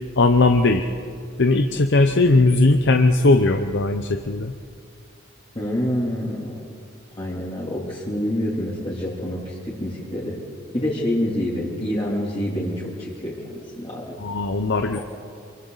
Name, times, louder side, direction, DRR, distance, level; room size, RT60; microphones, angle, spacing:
voice 1, 0.2-0.8 1.4-4.5 14.2-15.0, left 2 dB, 60° left, 6 dB, 0.8 m, -18 dB
voice 2, 5.5-6.5 7.2-10.4 10.7-14.2 14.9-15.0, equal, 30° left, -7 dB, 3.4 m, -27 dB
27.0 x 23.5 x 4.1 m, 2.3 s
head